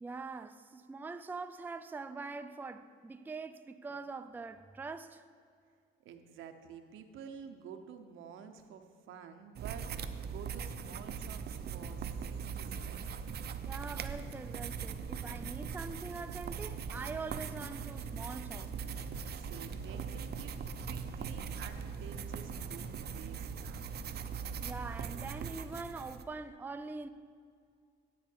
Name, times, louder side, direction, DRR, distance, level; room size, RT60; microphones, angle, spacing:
voice 1, 0.0-5.2 13.7-18.7 24.6-27.1, right 4 dB, 10° right, 0.4 m, -43 dB
voice 2, 6.0-13.1 19.3-24.3, right 7 dB, 85° right, 0.8 m, -51 dB
sound 1, 9.6-26.2, right 6 dB, 55° right, 0.6 m, -40 dB
sound 2, 18.8-23.2, left 7 dB, 65° left, 0.7 m, -53 dB
10.0 x 8.2 x 4.5 m
cardioid pair, 90°, 20 cm